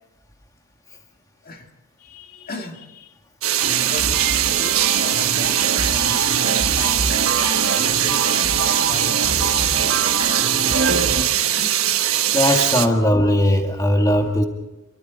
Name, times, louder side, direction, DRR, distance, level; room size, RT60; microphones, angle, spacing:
voice 1, 2.0-3.2 3.8-11.1 11.4-11.7, left 2 dB, 45° left, 3 dB, 2.2 m, -38 dB
sound 1, 3.4-12.9, right 11 dB, 80° right, 1.3 m, -21 dB
sound 2, 3.6-11.2, right 3 dB, 60° right, 1.9 m, -26 dB
voice 2, 12.3-14.4, left 1 dB, 15° left, 3 dB, 2.1 m, -18 dB
29.5 x 24.5 x 4.1 m, 1.0 s
head